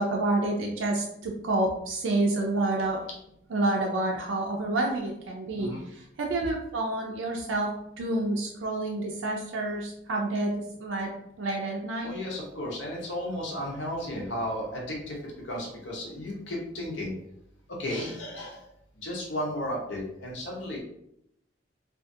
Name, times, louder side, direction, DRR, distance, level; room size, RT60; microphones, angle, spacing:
voice 1, 0.0-3.0 3.5-11.1 11.4-12.1, right 2 dB, 75° right, 0 dB, 0.4 m, -29 dB
voice 2, 12.0-15.2 15.4-17.1 17.8-18.6 19.0-20.8, left 1 dB, 65° left, -2 dB, 0.8 m, -34 dB
2.4 x 2.4 x 2.6 m, 0.77 s
head